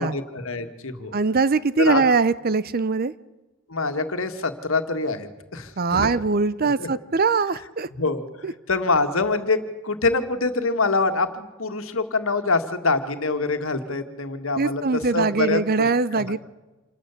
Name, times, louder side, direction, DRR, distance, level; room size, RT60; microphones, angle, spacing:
voice 1, 0.0-1.1 1.8-2.0 3.7-6.1 6.8-6.9 7.9-8.3 8.7-9.6 9.8-15.6 16.1-16.2, left 3 dB, 70° left, 7 dB, 1.9 m, -25 dB
voice 2, 1.1-3.1 5.8-7.9 8.4-8.5 14.6-16.4, right 4 dB, 45° right, 17 dB, 0.7 m, -22 dB
27.5 x 13.0 x 8.3 m, 1.1 s
head